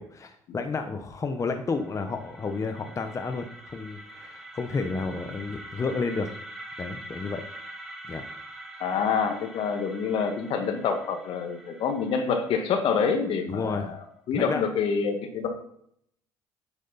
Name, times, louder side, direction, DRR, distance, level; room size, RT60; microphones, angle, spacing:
voice 1, 0.0-6.3 6.8-7.4 8.1-8.3 13.5-13.9 14.3-14.6, left 4 dB, 30° left, 6 dB, 1.0 m, -31 dB
sound 1, 1.4-13.3, right 1 dB, ahead, 3.2 m, -44 dB
voice 2, 8.8-14.0 14.3-15.5, left 6 dB, 60° left, 6 dB, 1.8 m, -27 dB
9.5 x 8.1 x 4.1 m, 0.70 s
hypercardioid pair, 70°, 10 cm